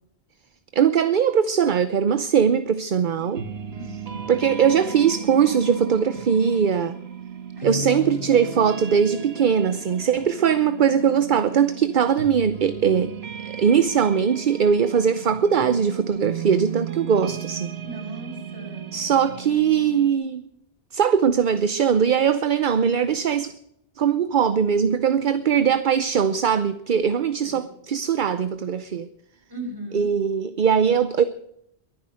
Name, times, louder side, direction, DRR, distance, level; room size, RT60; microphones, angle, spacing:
voice 1, 0.7-3.4 4.3-7.0 7.6-13.1 13.4-17.7 18.9-20.5 20.9-23.5 24.0-29.1 29.9-31.2, right 7 dB, 50° right, 0.8 m, -21 dB
sound 1, 3.2-20.1, right 6 dB, 70° right, 1.6 m, -35 dB
voice 2, 3.8-4.4 7.6-8.1 17.8-18.9 27.4-27.7 29.5-30.1, right 1 dB, 20° right, 5.5 m, -37 dB
22.5 x 9.9 x 6.4 m
omnidirectional pair, 1.1 m